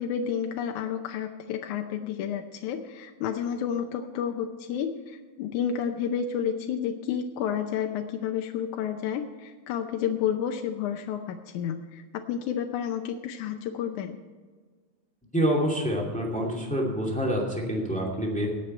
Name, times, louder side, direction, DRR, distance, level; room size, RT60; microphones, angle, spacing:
voice 1, 0.0-4.9 5.4-12.0 12.3-14.2, left 8 dB, 75° left, 4 dB, 2.1 m, -30 dB
voice 2, 15.3-18.5, equal, 5° left, -2 dB, 1.9 m, -27 dB
18.5 x 7.9 x 4.4 m, 1.5 s
omnidirectional pair, 3.6 m